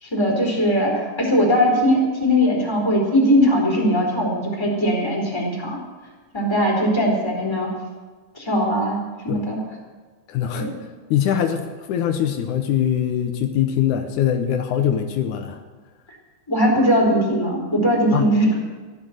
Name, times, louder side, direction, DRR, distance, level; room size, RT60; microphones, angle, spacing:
voice 1, 0.0-5.8 6.3-7.7 8.3-9.0 9.2-9.6 10.5-10.7 16.5-18.6, equal, 10° left, -2 dB, 3.8 m, -20 dB
voice 2, 10.3-10.7 11.1-15.6 18.1-18.3, left 9 dB, 80° left, 6 dB, 2.3 m, -22 dB
15.0 x 12.0 x 6.5 m, 1.4 s
omnidirectional pair, 3.5 m